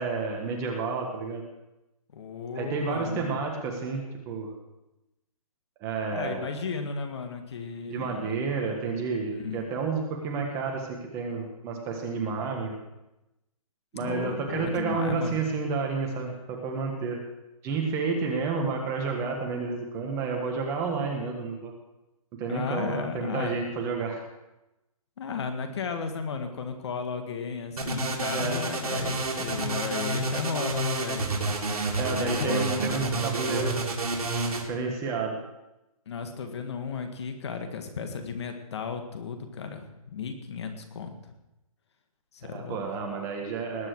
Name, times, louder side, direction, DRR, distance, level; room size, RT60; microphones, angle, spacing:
voice 1, 0.0-1.4 2.5-4.5 5.8-6.5 7.9-12.7 13.9-17.2 17.6-21.7 22.3-24.2 28.3-28.6 32.0-33.8 34.6-35.4 42.5-43.9, right 4 dB, 15° right, 2 dB, 1.4 m, -30 dB
voice 2, 2.1-3.3 6.1-8.4 9.3-9.6 14.0-15.4 22.5-23.6 25.2-31.3 32.1-32.7 36.1-41.2 42.3-42.8, left 5 dB, 45° left, 6 dB, 1.8 m, -34 dB
sound 1, 27.8-34.6, right 2 dB, 75° right, 3.3 m, -29 dB
19.5 x 8.9 x 4.8 m, 0.95 s
hypercardioid pair, 160°, 19 cm